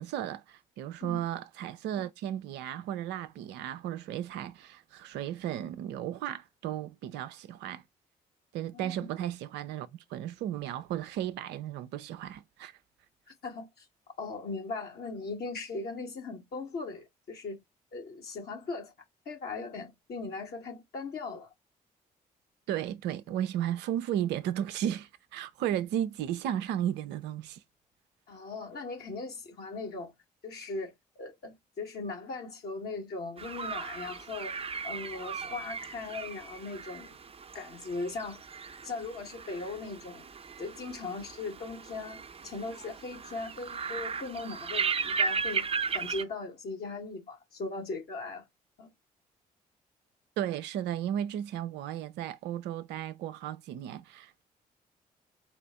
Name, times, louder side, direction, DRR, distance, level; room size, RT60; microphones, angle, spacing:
voice 1, 0.0-7.8 8.5-12.8 22.7-27.6 50.4-54.4, right 11 dB, 60° right, 0.5 m, -34 dB
voice 2, 13.4-13.9 14.2-17.6 17.9-18.9 19.3-21.5 28.3-30.1 30.4-37.1 37.5-38.4 38.8-40.3 40.6-45.7 45.9-48.4 48.8-48.9, left 3 dB, 55° left, 1.8 m, -39 dB
sound 1, 33.4-46.2, right 5 dB, 30° right, 0.8 m, -36 dB
4.2 x 2.5 x 4.3 m
figure-of-eight pair, 40°, 20 cm